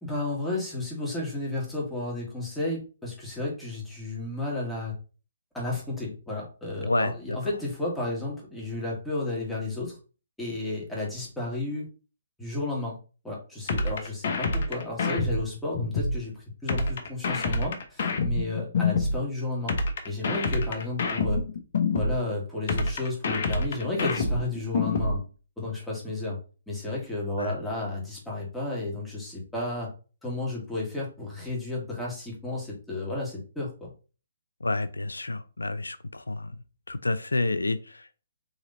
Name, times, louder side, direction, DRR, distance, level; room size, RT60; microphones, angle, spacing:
voice 1, 0.0-4.9 5.5-10.0 10.4-11.9 12.4-13.0 13.2-19.8 20.1-21.4 21.9-25.2 25.6-26.4 26.7-29.9 30.2-33.9, left 2 dB, 5° left, -5 dB, 1.7 m, -32 dB
voice 2, 6.8-7.4 27.4-27.5 34.6-36.6 36.9-38.3, left 2 dB, 90° left, 13 dB, 0.5 m, -29 dB
sound 1, 13.7-16.2 16.7-19.2 19.7-22.2 22.7-25.2, left 3 dB, 55° left, 1.0 m, -26 dB
4.1 x 3.0 x 3.9 m, 0.35 s
figure-of-eight pair, 135°, 0 cm